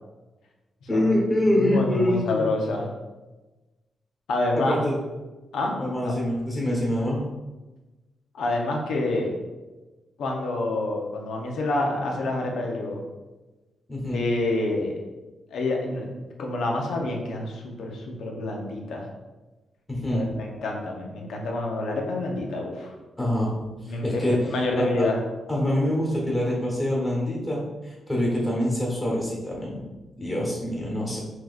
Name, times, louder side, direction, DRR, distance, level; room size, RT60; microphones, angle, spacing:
voice 1, 0.9-2.5 4.5-4.9 5.8-7.2 13.9-14.2 19.9-20.3 23.2-23.5 23.8-24.4 24.7-25.0 25.5-29.8 30.2-31.2, left 1 dB, 10° left, -4 dB, 1.3 m, -25 dB
voice 2, 1.4-2.9 4.3-4.9 5.5-5.8 6.0-6.1 8.3-9.3 10.2-13.0 14.1-15.0 15.5-19.1 20.1-22.9 23.8-25.2, left 2 dB, 85° left, 0 dB, 0.9 m, -27 dB
6.0 x 3.0 x 2.5 m, 1.2 s
wide cardioid pair, 155°, 0 cm